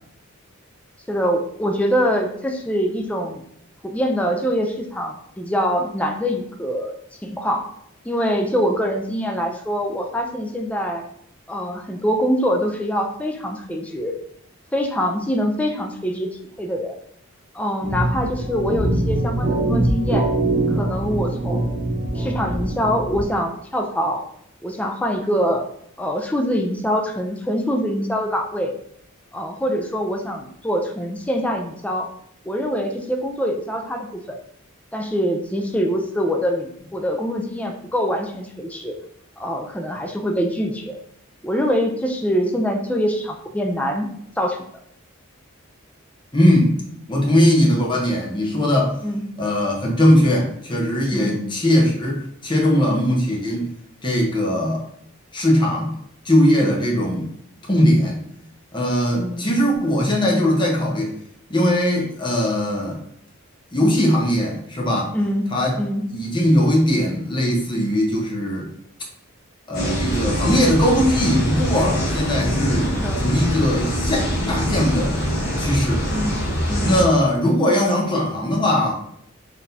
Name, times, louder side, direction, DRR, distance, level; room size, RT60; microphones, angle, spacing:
voice 1, 1.1-3.4 3.8-6.9 7.2-7.6 8.0-11.0 11.5-14.2 14.7-16.3 16.6-17.0 17.5-20.3 20.7-21.7 22.2-24.2 24.6-25.6 26.0-28.7 29.3-32.1 32.5-34.4 34.9-39.0 39.4-41.0 41.4-44.1 44.4-44.6 49.0-49.2 51.1-51.4 56.6-56.8 59.1-59.5 65.1-65.5 65.8-66.0 72.9-73.2 76.1-76.4 76.7-77.0, equal, 5° left, 2 dB, 0.4 m, -24 dB
sound 1, 17.8-23.2, right 2 dB, 30° right, 1.0 m, -23 dB
voice 2, 46.3-46.8 47.1-49.0 49.4-53.7 54.0-54.8 55.3-55.9 56.2-57.3 57.6-58.2 58.7-61.1 61.5-63.0 63.7-65.1 65.5-65.8 66.1-68.7 69.7-72.9 73.2-74.2 74.5-75.2 75.6-76.0 76.8-78.9, left 1 dB, 20° left, -2 dB, 0.9 m, -19 dB
sound 2, 69.7-77.0, equal, 50° left, 1.1 m, -23 dB
4.0 x 3.5 x 2.7 m, 0.70 s
head